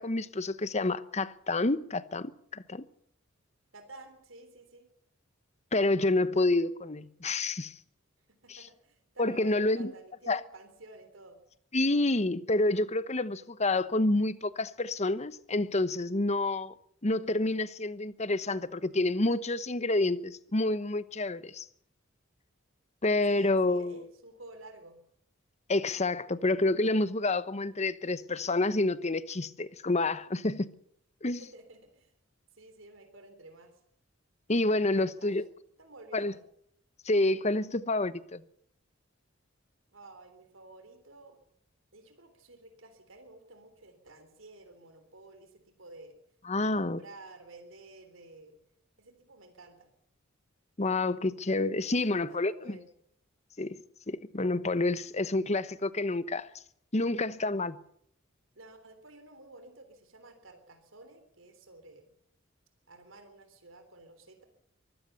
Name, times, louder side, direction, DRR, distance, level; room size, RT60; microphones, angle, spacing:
voice 1, 0.0-2.8 5.7-7.7 8.5-8.6 9.2-9.9 10.3-10.4 11.7-16.7 17.0-21.6 23.0-24.0 25.7-30.7 31.2-31.4 34.5-35.4 36.1-36.3 37.0-38.4 46.5-47.0 50.8-52.8 53.6-53.7 54.1-56.5 56.9-57.8, left 2 dB, 35° left, 1.0 m, -28 dB
voice 2, 3.7-4.9 8.3-11.4 23.3-25.0 31.2-32.1 32.5-33.8 35.0-35.4 35.8-36.4 39.9-41.4 41.9-46.1 46.6-48.6 49.0-49.9 51.7-52.9 58.6-62.0 62.9-64.4, right 2 dB, 80° right, 3.5 m, -52 dB
24.0 x 16.0 x 7.0 m
head